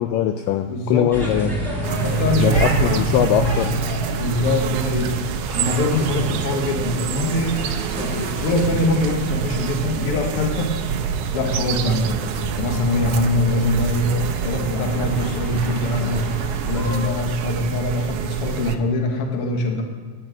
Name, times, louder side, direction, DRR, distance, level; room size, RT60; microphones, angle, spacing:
voice 1, 0.0-1.6 2.4-3.7, left 10 dB, 80° left, 8 dB, 2.0 m, -21 dB
voice 2, 0.7-1.5 2.0-3.0 4.2-5.1 5.6-7.7 8.0-10.8 11.3-14.2 14.4-19.8, left 2 dB, 55° left, 3 dB, 1.6 m, -23 dB
sound 1, 1.1-17.0, right 1 dB, ahead, 2.4 m, -29 dB
sound 2, 1.8-18.8, right 8 dB, 85° right, 1.7 m, -27 dB
9.7 x 9.2 x 6.2 m, 1.5 s
omnidirectional pair, 4.2 m